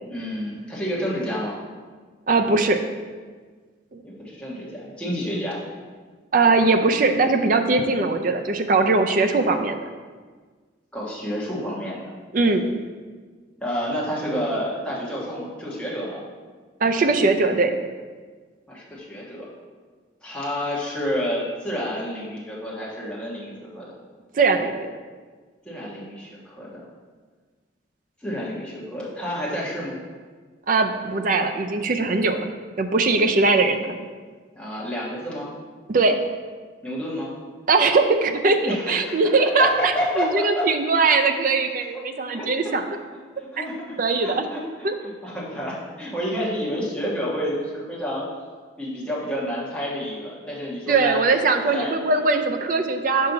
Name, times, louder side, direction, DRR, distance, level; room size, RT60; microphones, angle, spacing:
voice 1, 0.0-1.6 4.0-5.6 10.9-12.1 13.6-16.2 18.7-19.5 20.2-23.9 25.6-26.8 28.2-30.0 34.5-35.5 36.8-37.3 38.6-39.2 39.6-40.7 42.3-42.5 43.4-43.8 44.2-48.2 48.8-51.2 51.6-52.2, equal, 5° left, -8 dB, 1.3 m, -29 dB
voice 2, 2.3-2.8 3.9-4.0 6.3-9.8 12.3-12.6 16.8-17.8 24.3-24.9 30.7-32.5 32.8-33.9 35.9-36.2 37.7-42.8 44.0-44.4 44.8-44.9 50.9-53.3, right 3 dB, 45° right, 6 dB, 0.4 m, -20 dB
5.5 x 5.4 x 4.0 m, 1.5 s
head